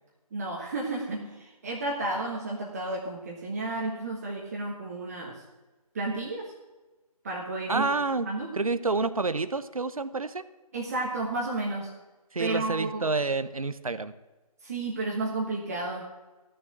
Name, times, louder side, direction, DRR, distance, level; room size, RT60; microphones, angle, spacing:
voice 1, 0.3-5.4 5.9-6.5 7.2-7.9 8.2-8.5 10.7-11.9 12.4-13.1 14.6-16.1, right 2 dB, 25° right, -2 dB, 1.5 m, -32 dB
voice 2, 7.7-8.3 8.5-10.4 12.3-14.1, right 3 dB, 65° right, 13 dB, 0.9 m, -28 dB
14.5 x 6.7 x 9.0 m, 1.2 s
figure-of-eight pair, 155°, 20 cm